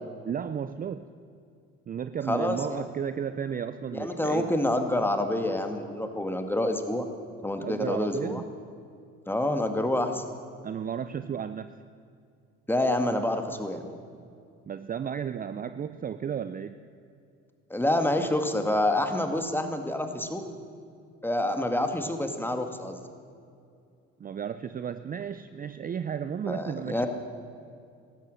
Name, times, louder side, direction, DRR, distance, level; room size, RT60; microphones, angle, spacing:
voice 1, 0.2-1.1 1.9-4.5 7.6-8.5 10.6-11.7 14.7-16.8 24.2-27.1, right 8 dB, 30° right, 12 dB, 0.6 m, -33 dB
voice 2, 2.3-2.8 3.9-7.1 7.4-8.4 9.3-10.2 12.7-13.9 17.7-20.4 21.2-23.0 26.5-27.1, left 1 dB, 5° left, 6 dB, 1.9 m, -27 dB
15.5 x 12.0 x 7.7 m, 2.4 s
hypercardioid pair, 75°, 31 cm